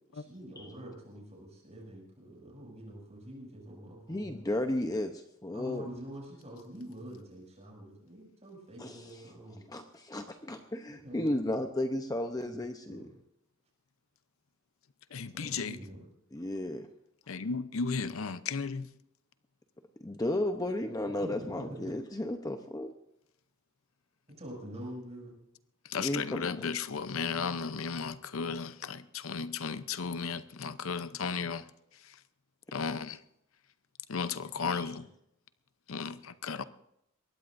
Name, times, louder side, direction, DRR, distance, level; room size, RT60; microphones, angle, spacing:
voice 1, 0.1-4.4 5.5-9.6 10.9-11.6 12.4-12.6 12.9-13.1 15.4-16.0 21.2-21.9 24.3-25.4, right 1 dB, 35° right, 6.9 m, -46 dB
voice 2, 4.1-5.9 8.8-9.0 9.7-13.1 16.3-16.8 20.0-22.9 25.9-26.6 34.7-34.9, left 1 dB, 20° left, 0.8 m, -34 dB
voice 3, 15.1-15.8 17.3-18.9 25.8-31.7 31.9-32.2 32.7-33.2 34.1-35.1 35.9-36.6, left 5 dB, 80° left, 0.7 m, -35 dB
22.5 x 18.5 x 2.6 m
head